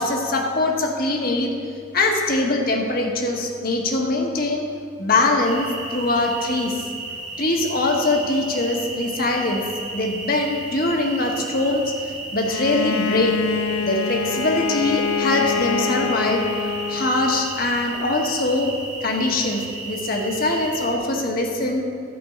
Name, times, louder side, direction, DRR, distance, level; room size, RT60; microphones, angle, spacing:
voice 1, 0.0-1.5 1.9-4.7 5.0-6.8 7.4-9.6 9.9-13.4 13.8-16.4 16.9-18.7 19.0-21.8, left 2 dB, 45° left, 2 dB, 1.2 m, -22 dB
sound 1, 5.5-21.0, right 3 dB, 35° right, 1.4 m, -34 dB
Bowed string instrument, 12.5-17.6, left 5 dB, 80° left, 0.4 m, -26 dB
11.0 x 5.1 x 7.8 m, 2.3 s
head